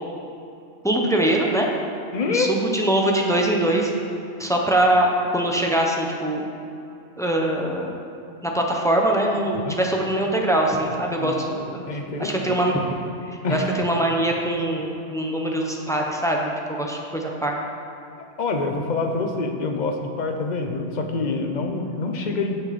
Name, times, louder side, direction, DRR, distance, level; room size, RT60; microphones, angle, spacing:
voice 1, 0.8-1.7 2.3-3.9 4.4-6.4 7.2-7.9 8.4-12.8 13.2-17.6, right 1 dB, 5° left, 0 dB, 0.8 m, -23 dB
voice 2, 2.1-2.5 9.7-9.8 11.2-12.6 13.4-13.7 18.4-22.6, left 3 dB, 40° left, 4 dB, 0.9 m, -26 dB
15.5 x 5.8 x 4.3 m, 2.6 s
omnidirectional pair, 1.4 m